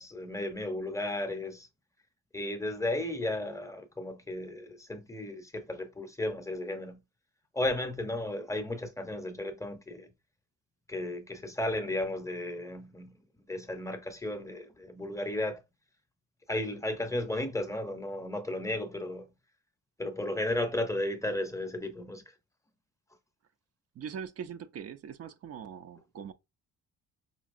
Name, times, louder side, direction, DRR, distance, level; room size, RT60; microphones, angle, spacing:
voice 1, 0.0-1.7 2.3-7.0 7.5-10.1 10.9-13.1 13.5-15.6 16.5-19.3 20.0-22.2, left 1 dB, 10° left, 0.7 m, -34 dB
voice 2, 24.0-26.3, right 7 dB, 55° right, 0.5 m, -41 dB
5.1 x 2.8 x 2.5 m
cardioid pair, 90°, 30 cm